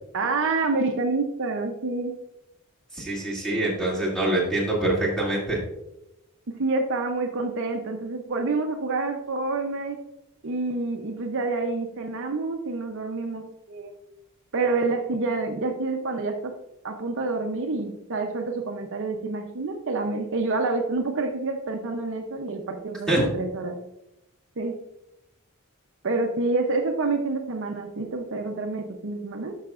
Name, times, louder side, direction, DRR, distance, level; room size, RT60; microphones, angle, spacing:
voice 1, 0.1-2.2 6.5-10.0 10.4-13.9 14.5-16.5 16.8-23.7 24.6-24.8 26.0-29.5, right 3 dB, 60° right, 4 dB, 0.7 m, -28 dB
voice 2, 2.9-5.6 23.1-23.2, right 1 dB, 5° left, -6 dB, 2.5 m, -25 dB
11.5 x 5.7 x 2.5 m, 0.88 s
head